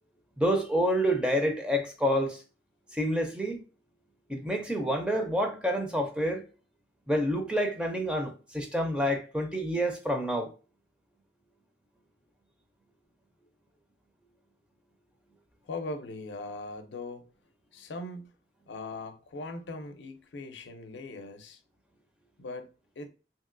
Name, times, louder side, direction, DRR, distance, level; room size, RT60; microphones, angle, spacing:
voice 1, 0.4-2.4 2.9-3.6 4.3-6.4 7.1-10.5, equal, 5° right, 0.4 m, -28 dB
voice 2, 15.6-17.3 17.7-18.3 18.7-21.6 22.4-22.7 23.0-23.1, left 2 dB, 90° left, 0.5 m, -40 dB
2.9 x 2.8 x 2.5 m
head